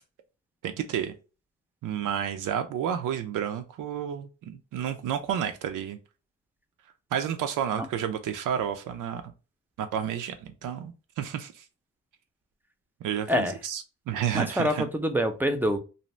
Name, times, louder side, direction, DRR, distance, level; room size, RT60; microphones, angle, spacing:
voice 1, 0.6-1.1 1.8-6.0 7.1-9.2 9.8-11.6 13.0-13.8 14.1-14.9, right 9 dB, 90° right, 0.5 m, -31 dB
voice 2, 14.3-15.8, equal, 5° right, 0.4 m, -26 dB
2.6 x 2.0 x 3.1 m
cardioid pair, 100°, 30 cm